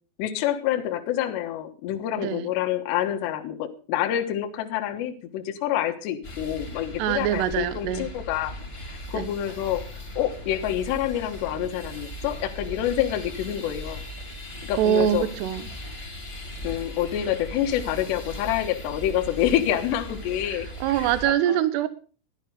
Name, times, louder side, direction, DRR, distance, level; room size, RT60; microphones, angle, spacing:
voice 1, 0.2-8.6 8.9-9.8 10.2-14.0 14.6-15.3 16.6-21.6, left 11 dB, 70° left, 5 dB, 3.0 m, -27 dB
voice 2, 2.2-2.5 7.0-8.1 9.1-9.3 14.8-15.6 20.5-21.9, right 10 dB, 75° right, 14 dB, 2.6 m, -24 dB
sound 1, 6.2-21.3, left 1 dB, 15° left, 2.4 m, -38 dB
13.5 x 12.0 x 5.0 m, 0.39 s
omnidirectional pair, 6.0 m